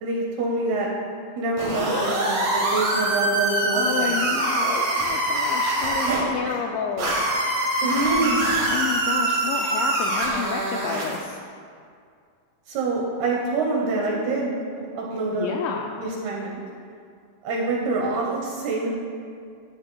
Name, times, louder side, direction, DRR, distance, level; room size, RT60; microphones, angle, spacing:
voice 1, 0.0-0.9 1.4-4.2 6.0-6.6 7.8-8.5 12.7-15.6 16.0-16.6 17.4-18.9, right 3 dB, 70° right, -2 dB, 2.5 m, -26 dB
sound 1, 1.6-6.2 7.0-11.2, right 2 dB, 45° right, 3.3 m, -24 dB
voice 2, 3.7-7.2 7.8-11.4 15.3-16.0, left 7 dB, 85° left, 2 dB, 2.6 m, -30 dB
13.0 x 12.5 x 2.3 m, 2.3 s
omnidirectional pair, 5.6 m